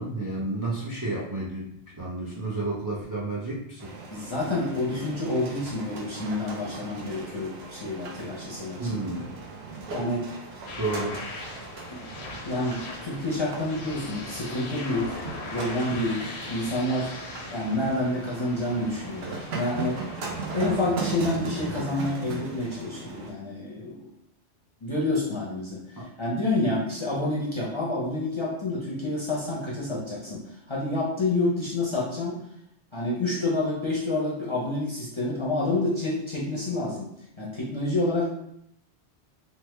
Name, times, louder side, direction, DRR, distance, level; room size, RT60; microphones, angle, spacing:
voice 1, 0.0-1.6 2.0-3.8 8.8-9.3 10.8-11.2 26.0-26.1, right 2 dB, 30° right, -5 dB, 0.4 m, -31 dB
sound 1, 3.8-23.3, right 3 dB, 70° right, 0.9 m, -38 dB
voice 2, 4.1-8.9 9.9-10.2 11.9-12.0 12.4-17.1 17.5-20.0 20.5-24.0 24.8-25.8 26.2-30.4 30.7-32.4 32.9-37.1 37.4-38.3, left 2 dB, 35° left, -5 dB, 0.5 m, -28 dB
sound 2, 10.7-20.7, left 3 dB, 75° left, 0.8 m, -40 dB
3.3 x 2.1 x 3.1 m, 0.74 s
omnidirectional pair, 1.1 m